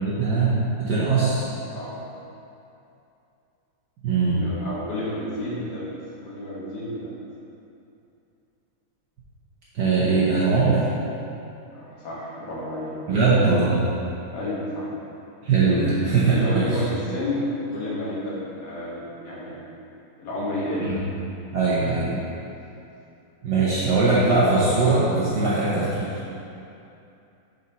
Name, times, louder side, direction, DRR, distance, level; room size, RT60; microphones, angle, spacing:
voice 1, 0.0-1.6 4.0-4.4 9.7-10.9 13.1-13.8 15.4-16.8 20.8-20.9 21.5-22.1 23.4-26.1, right 3 dB, 60° right, -9 dB, 1.2 m, -21 dB
voice 2, 4.3-5.9 6.2-7.2 11.7-13.0 14.3-14.9 16.3-19.6 20.2-21.0, left 1 dB, 55° left, -7 dB, 1.9 m, -31 dB
6.5 x 4.2 x 4.0 m, 2.7 s
omnidirectional pair, 2.4 m